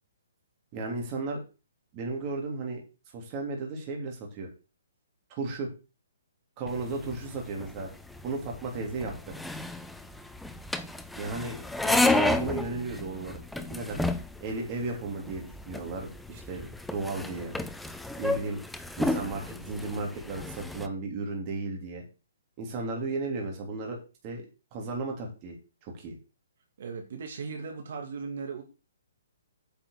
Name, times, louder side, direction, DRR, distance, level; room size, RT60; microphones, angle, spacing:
voice 1, 0.7-1.4 1.9-2.8 3.1-4.5 5.3-5.7 6.6-7.9 8.2-9.3 11.2-13.4 13.7-14.0 14.4-17.5 18.2-18.6 19.0-22.0 22.6-24.0 24.2-25.6 25.8-26.1, right 3 dB, 25° right, 1 dB, 3.2 m, -34 dB
sound 1, 6.7-20.9, left 2 dB, ahead, 0.5 m, -32 dB
voice 2, 26.8-28.6, right 5 dB, 55° right, 3 dB, 2.3 m, -37 dB
9.0 x 6.0 x 6.6 m, 0.31 s
hypercardioid pair, 170°, 0 cm